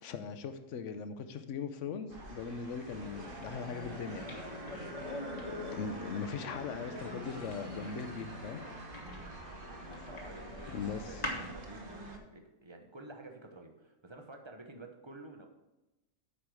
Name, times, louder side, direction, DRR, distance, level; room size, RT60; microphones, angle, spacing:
voice 1, 0.0-4.3 5.7-8.6 10.7-11.2, left 5 dB, 65° left, 9 dB, 1.0 m, -40 dB
sound 1, 2.1-12.2, right 2 dB, 40° right, 1.1 m, -48 dB
sound 2, 2.9-11.5, left 2 dB, 30° left, 1.3 m, -44 dB
voice 2, 9.0-9.4 9.8-15.5, right 2 dB, 25° right, 4 dB, 0.8 m, -51 dB
8.4 x 5.0 x 6.1 m, 1.0 s
omnidirectional pair, 1.5 m